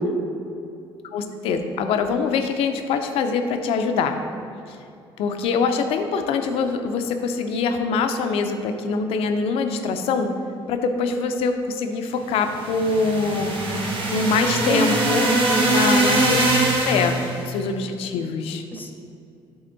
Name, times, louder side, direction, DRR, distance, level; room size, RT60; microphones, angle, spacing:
voice 1, 1.1-4.2 4.7-4.8 5.2-10.3 10.7-13.6 14.1-15.3 15.7-17.1 17.4-18.6, left 4 dB, 80° left, 6 dB, 0.5 m, -24 dB
sound 1, 12.4-17.4, right 2 dB, 60° right, 1.2 m, -22 dB
voice 2, 14.7-15.7 16.0-16.5 18.7-18.9, equal, 20° left, 3 dB, 0.7 m, -26 dB
7.8 x 3.6 x 3.9 m, 2.5 s
cardioid pair, 95°, 10 cm